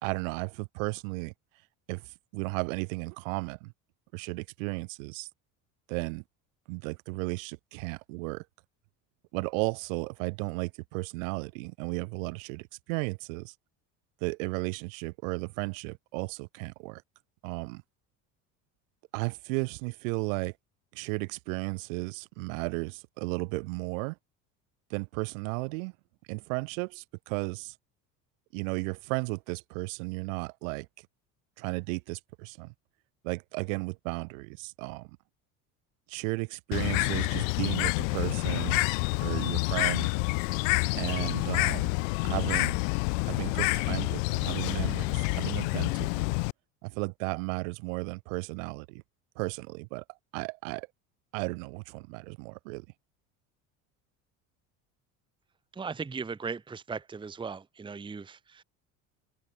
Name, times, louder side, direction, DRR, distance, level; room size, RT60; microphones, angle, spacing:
voice 1, 0.0-1.3 1.9-3.7 4.1-5.3 5.9-6.2 6.7-8.4 9.3-13.5 14.2-17.0 17.4-17.8 19.1-20.5 20.9-24.2 24.9-25.9 26.3-27.7 28.5-30.9 31.6-32.7 33.2-35.1 36.1-38.8 39.2-40.1 41.0-41.9 42.2-42.8 43.2-46.3 46.8-49.0 49.4-50.0 50.3-50.9 51.3-52.8, right 30 dB, 85° right, 2.5 m, -34 dB
Bird, 36.7-46.5, left 32 dB, 85° left, 1.7 m, -28 dB
voice 2, 55.7-58.6, right 5 dB, 15° right, 0.8 m, -38 dB
supercardioid pair, 95°, 38 cm